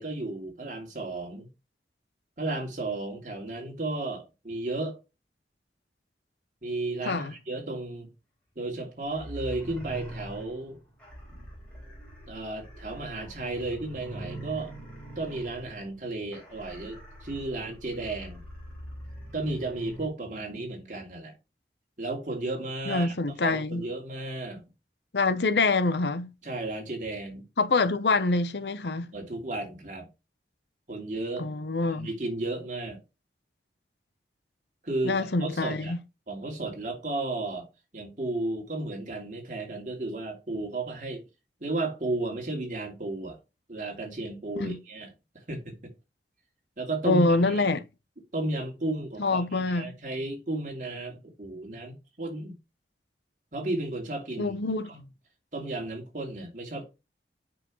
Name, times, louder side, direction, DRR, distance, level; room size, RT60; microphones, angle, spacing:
voice 1, 0.0-1.5 2.4-5.0 6.6-8.1 8.6-10.8 12.3-14.7 15.2-18.4 19.3-21.4 22.0-24.6 26.4-27.4 29.1-30.1 30.9-31.5 31.9-33.0 34.8-35.9 36.3-37.7 37.9-41.2 41.6-43.4 43.7-45.1 45.5-45.7 46.8-47.7 48.3-52.5 53.5-54.5 54.9-55.1 55.5-56.8, right 2 dB, 45° right, 2.7 m, -33 dB
sound 1, 9.0-20.1, equal, 5° left, 4.2 m, -43 dB
voice 2, 22.9-23.8 25.1-26.3 27.6-29.1 31.4-32.1 35.0-36.0 44.6-44.8 47.0-47.8 49.2-49.9 54.4-54.9, left 3 dB, 80° left, 0.8 m, -25 dB
7.8 x 5.7 x 3.1 m
head